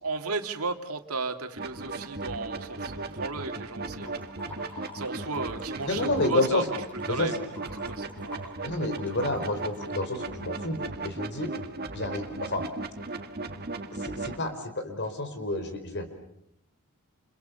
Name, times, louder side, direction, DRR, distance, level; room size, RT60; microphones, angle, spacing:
voice 1, 0.0-4.1 4.6-6.6 7.1-7.3 7.8-8.6, right 4 dB, 75° right, 6 dB, 2.6 m, -34 dB
sound 1, 1.6-14.4, right 3 dB, 45° right, 1.9 m, -37 dB
sound 2, 4.0-5.5 5.8-10.2, left 3 dB, 10° left, 5.6 m, -47 dB
voice 2, 5.9-6.7 7.0-7.4 8.6-11.5 11.9-12.6 13.9-16.1, left 2 dB, 50° left, 8 dB, 4.6 m, -29 dB
29.5 x 29.0 x 7.0 m, 0.74 s
head